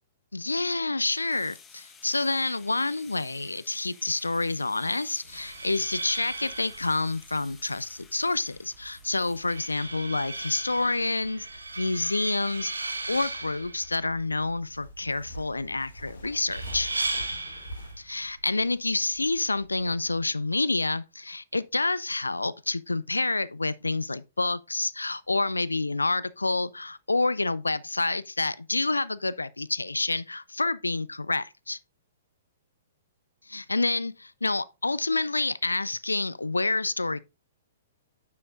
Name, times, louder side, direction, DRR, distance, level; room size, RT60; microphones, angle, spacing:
voice 1, 0.3-16.9 18.0-31.8 33.5-37.2, left 3 dB, 80° left, 0.3 m, -28 dB
sound 1, 1.0-11.0, left 6 dB, 15° left, 1.1 m, -55 dB
sound 2, 5.2-20.2, right 2 dB, 80° right, 1.4 m, -38 dB
sound 3, 12.9-18.0, equal, 65° left, 2.8 m, -44 dB
9.4 x 7.5 x 2.5 m
figure-of-eight pair, 115°, 0 cm